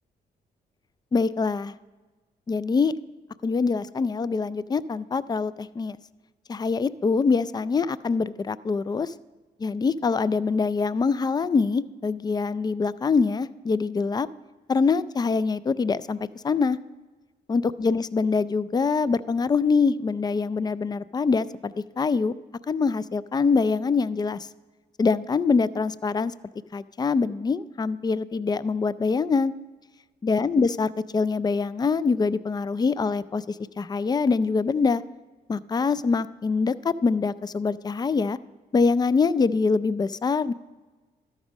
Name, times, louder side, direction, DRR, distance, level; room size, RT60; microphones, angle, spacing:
voice 1, 1.1-1.7 2.5-2.9 3.4-6.0 6.5-9.1 9.6-14.3 14.7-16.2 16.4-16.8 17.5-22.3 22.7-24.5 25.0-26.3 26.7-29.5 30.2-35.0 35.5-38.4 38.7-40.5, left 4 dB, 25° left, 18 dB, 0.4 m, -24 dB
12.5 x 5.4 x 6.1 m, 1.3 s
cardioid pair, 65°, 18 cm